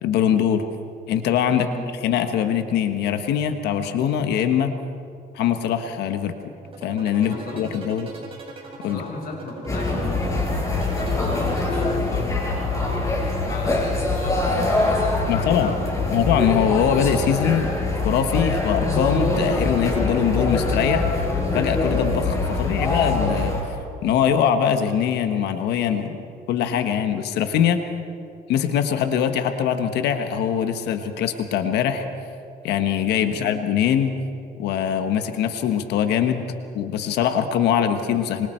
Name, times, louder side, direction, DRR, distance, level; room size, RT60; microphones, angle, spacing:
voice 1, 0.0-0.6 1.1-1.7 2.0-4.7 5.3-6.3 6.8-8.1 8.8-9.0 15.3-15.7 16.1-17.7 18.0-21.0 21.5-23.6 24.0-26.2 26.5-27.8 28.5-32.0 32.6-34.1 34.6-36.4 36.7-38.5, left 8 dB, 80° left, 8 dB, 1.4 m, -22 dB
voice 2, 1.6-1.9 6.8-6.9 7.2-7.9 8.8-13.0 13.4-16.2 26.5-26.7 33.3-33.5, left 3 dB, 60° left, 1 dB, 5.5 m, -36 dB
sound 1, 6.6-12.6, right 3 dB, 35° right, 5.6 m, -40 dB
sound 2, 9.7-23.6, left 2 dB, 20° left, 5.7 m, -23 dB
25.5 x 25.5 x 4.6 m, 2.5 s
cardioid pair, 110°, 17 cm